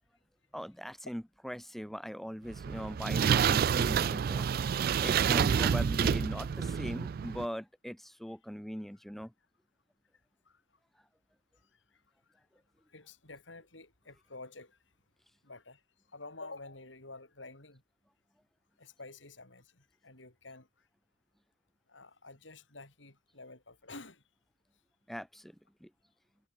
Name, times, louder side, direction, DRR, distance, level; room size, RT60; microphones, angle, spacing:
voice 1, 0.5-9.3 25.1-25.5 25.8-25.9, equal, ahead, 1.1 m, -40 dB
sound 1, 2.5-7.5, right 7 dB, 55° right, 0.3 m, -28 dB
voice 2, 12.9-14.8 15.4-15.8 16.1-17.8 18.8-20.7 21.9-24.2, left 3 dB, 85° left, 6.1 m, -50 dB
head